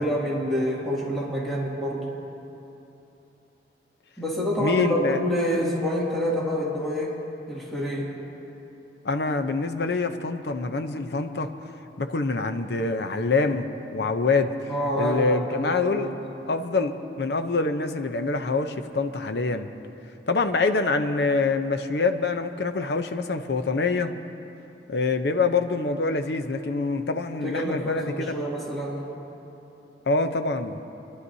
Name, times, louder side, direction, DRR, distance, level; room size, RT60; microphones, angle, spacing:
voice 1, 0.0-2.2 4.2-7.2 7.5-8.1 14.7-16.1 27.4-29.1, equal, ahead, -7 dB, 2.3 m, -27 dB
voice 2, 4.6-5.2 9.0-11.5 12.0-14.5 15.0-16.1 16.5-19.7 20.3-24.1 24.9-28.3 30.1-30.8, left 3 dB, 70° left, 7 dB, 0.7 m, -25 dB
29.0 x 11.5 x 2.7 m, 2.9 s
head